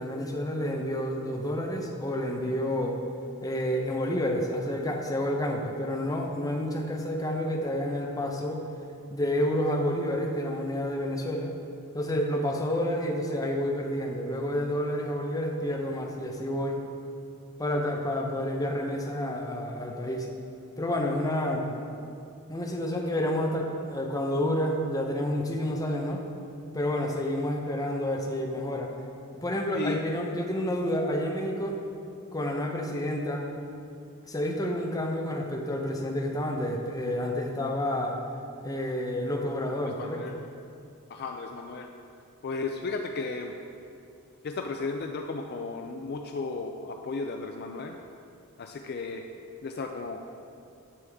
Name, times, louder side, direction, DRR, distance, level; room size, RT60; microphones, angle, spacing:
voice 1, 0.0-3.0 3.4-8.6 9.1-11.5 11.9-16.8 17.6-20.3 20.8-21.7 22.5-26.2 26.7-28.9 29.3-31.8 32.3-33.5 34.3-38.2 38.6-40.4, left 1 dB, 15° left, 0 dB, 0.8 m, -29 dB
voice 2, 39.8-40.3 41.1-41.9 42.4-43.5 44.4-48.0 48.6-49.2 49.6-50.2, left 3 dB, 45° left, 4 dB, 0.4 m, -34 dB
9.9 x 6.9 x 3.5 m, 2.5 s
head